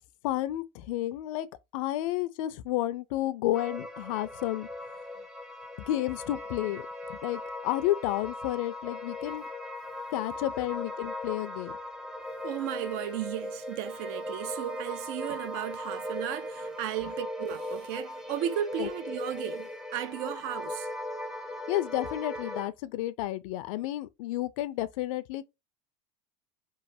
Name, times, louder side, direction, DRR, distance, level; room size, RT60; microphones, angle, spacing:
voice 1, 0.2-1.5 1.7-4.7 5.9-6.8 7.1-9.4 10.1-11.7 18.8-18.9 21.7-25.5, left 14 dB, 75° left, 0.4 m, -31 dB
sound 1, 3.5-22.7, left 1 dB, 5° right, 0.4 m, -38 dB
voice 2, 12.4-20.9, right 11 dB, 65° right, 0.5 m, -35 dB
3.1 x 2.3 x 2.5 m
supercardioid pair, 115°, 17 cm